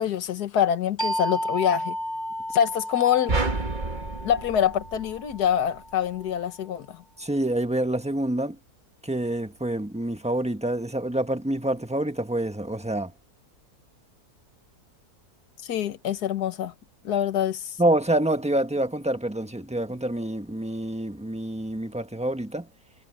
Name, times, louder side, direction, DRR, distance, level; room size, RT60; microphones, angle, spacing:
voice 1, 0.0-2.0 2.5-3.3 4.2-7.0 15.6-16.7 17.0-17.8, left 9 dB, 75° left, 1.7 m, -25 dB
sound 1, 1.0-6.3, equal, 30° left, 8.3 m, -33 dB
sound 2, 3.3-5.7, right 3 dB, 30° right, 1.5 m, -30 dB
voice 2, 7.2-8.6 9.0-13.1 17.8-22.7, right 1 dB, 5° right, 1.2 m, -27 dB
omnidirectional pair, 1.7 m